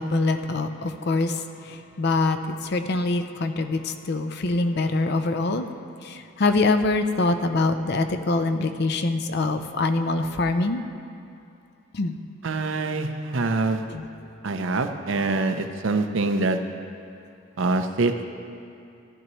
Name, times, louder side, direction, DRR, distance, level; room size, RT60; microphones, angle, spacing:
voice 1, 0.0-5.7 6.0-10.8 11.9-12.1 13.9-14.1, left 3 dB, 55° left, 7 dB, 0.5 m, -24 dB
voice 2, 12.4-13.8 14.4-16.6 17.6-18.1, right 3 dB, 70° right, 7 dB, 0.6 m, -24 dB
15.0 x 10.5 x 3.1 m, 2.6 s
head